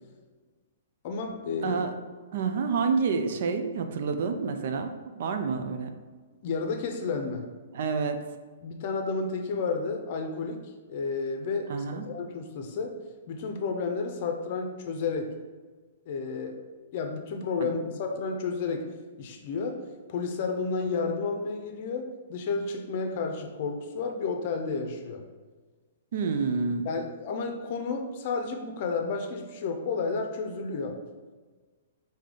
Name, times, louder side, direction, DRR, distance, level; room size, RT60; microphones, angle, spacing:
voice 1, 1.0-1.8 6.4-7.5 8.6-13.0 13.3-15.3 16.1-16.6 16.9-18.9 19.2-25.2 26.8-31.0, left 4 dB, 45° left, 4 dB, 0.6 m, -31 dB
voice 2, 2.3-5.9 7.7-8.2 11.7-12.0 17.6-18.0 26.1-26.9, right 5 dB, 55° right, 7 dB, 0.4 m, -28 dB
4.7 x 2.8 x 3.7 m, 1.4 s
figure-of-eight pair, 115°, 0 cm